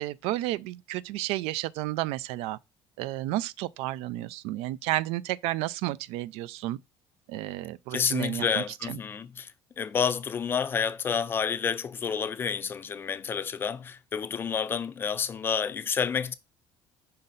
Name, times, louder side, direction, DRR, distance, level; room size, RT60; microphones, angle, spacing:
voice 1, 0.0-2.6 3.0-6.8 7.3-9.0, right 16 dB, 85° right, 0.4 m, -32 dB
voice 2, 7.9-9.5 9.8-16.3, left 7 dB, 20° left, 0.4 m, -29 dB
5.7 x 5.3 x 3.9 m
cardioid pair, 180°, 10 cm